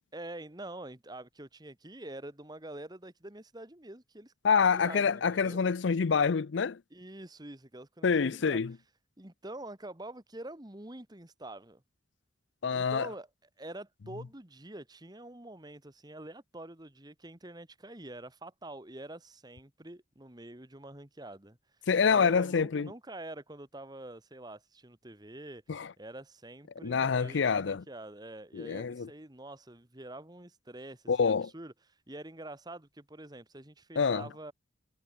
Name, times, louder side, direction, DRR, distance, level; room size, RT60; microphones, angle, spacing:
voice 1, 0.1-4.3 4.7-5.6 6.9-8.6 9.2-11.8 12.7-13.3 13.6-21.6 22.0-25.6 26.0-31.7 32.1-34.5, right 1 dB, 20° right, 1.7 m, -46 dB
voice 2, 4.4-6.8 8.0-8.7 12.6-13.1 21.9-22.9 25.7-25.9 26.8-27.8 28.5-29.1 31.1-31.5 34.0-34.2, left 5 dB, 70° left, 0.5 m, -26 dB
head